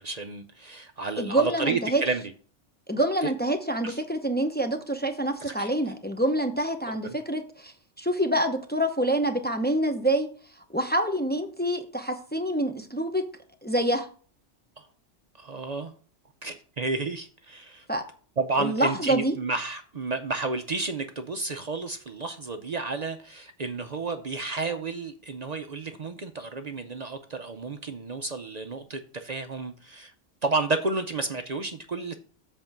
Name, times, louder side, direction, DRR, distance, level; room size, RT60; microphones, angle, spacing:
voice 1, 0.0-2.2 3.2-3.3 3.8-4.0 5.4-5.7 14.8-14.9 15.4-15.9 16.4-17.9 18.4-30.1 30.4-32.1, right 3 dB, 45° right, 0.6 m, -31 dB
voice 2, 1.2-2.0 2.9-10.3 10.7-13.2 13.6-14.1 17.9-18.0 18.6-19.3, right 1 dB, 10° left, 0.6 m, -26 dB
7.8 x 4.4 x 5.9 m
omnidirectional pair, 1.2 m